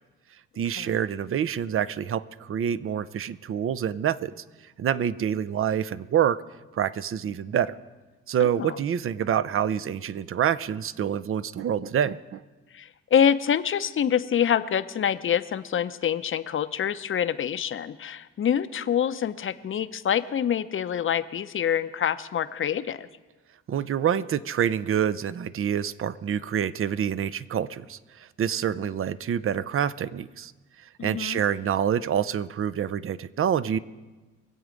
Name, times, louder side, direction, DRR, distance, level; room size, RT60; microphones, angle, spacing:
voice 1, 0.6-4.3 4.8-6.4 6.7-7.7 8.3-12.4 23.7-30.5 31.0-33.8, right 9 dB, 45° right, 17 dB, 0.6 m, -27 dB
voice 2, 12.7-23.1 31.0-31.4, left 8 dB, 40° left, 12 dB, 0.7 m, -26 dB
23.5 x 8.0 x 5.2 m, 1.2 s
cardioid pair, 90°, 30 cm